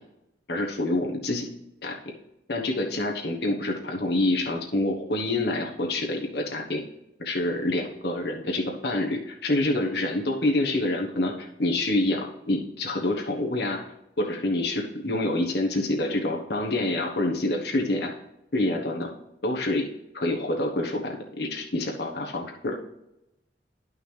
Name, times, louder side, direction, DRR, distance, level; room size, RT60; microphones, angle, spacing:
voice 1, 0.5-1.4 1.8-1.9 2.5-6.8 7.2-13.8 14.2-18.1 18.5-19.1 19.4-19.9 20.1-22.8, left 2 dB, 60° left, 1 dB, 1.2 m, -27 dB
11.0 x 5.9 x 3.3 m, 0.88 s
head